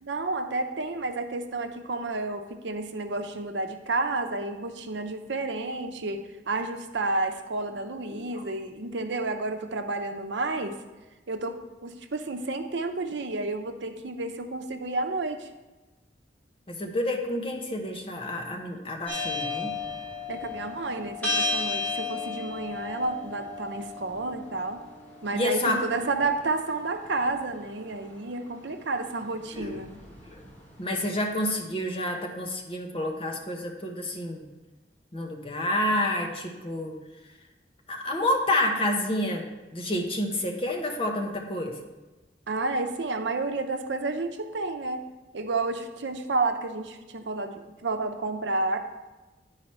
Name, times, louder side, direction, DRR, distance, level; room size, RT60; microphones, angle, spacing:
voice 1, 0.0-10.7 11.3-11.6 11.8-15.5 20.3-24.8 25.2-29.9 42.5-45.0 45.3-48.8, right 3 dB, 80° right, 6 dB, 0.7 m, -31 dB
voice 2, 8.1-8.4 16.7-19.7 25.3-25.8 29.5-29.7 30.3-30.4 30.8-34.4 35.1-37.0 37.9-41.8, left 1 dB, 30° left, 2 dB, 0.9 m, -29 dB
sound 1, 19.1-31.2, left 3 dB, 10° left, 1.6 m, -35 dB
10.0 x 4.9 x 4.3 m, 1.1 s
head